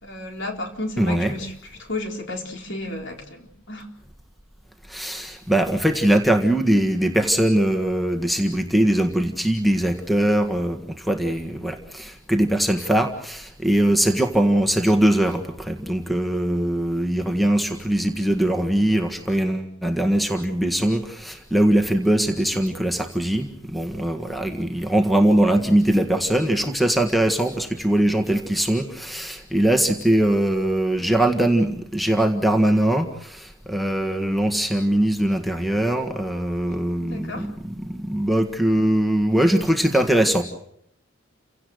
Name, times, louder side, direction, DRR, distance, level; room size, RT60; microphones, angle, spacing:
voice 1, 0.0-3.9 36.6-37.5, left 2 dB, 60° left, 3 dB, 4.2 m, -33 dB
voice 2, 1.0-1.3 4.9-37.5 37.8-40.4, right 1 dB, ahead, 5 dB, 1.7 m, -21 dB
29.5 x 17.5 x 7.9 m, 0.72 s
head